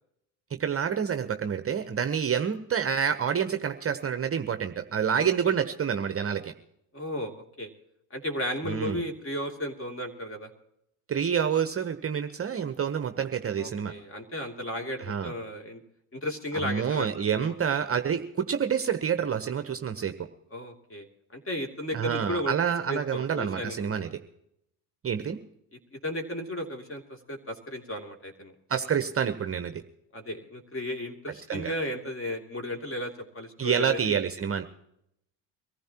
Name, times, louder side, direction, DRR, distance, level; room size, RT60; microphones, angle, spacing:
voice 1, 0.5-6.5 8.7-9.0 11.1-13.9 15.0-15.3 16.5-20.3 21.9-24.1 25.0-25.4 28.7-29.8 31.5-31.7 33.6-34.6, right 7 dB, 30° right, 9 dB, 0.9 m, -28 dB
voice 2, 6.9-7.7 8.1-10.5 13.6-15.8 16.1-17.5 20.5-21.1 21.3-22.5 22.9-23.9 25.9-28.5 30.1-34.2, left 1 dB, 25° left, 4 dB, 2.9 m, -34 dB
23.5 x 15.0 x 2.9 m, 0.77 s
hypercardioid pair, 75°, 49 cm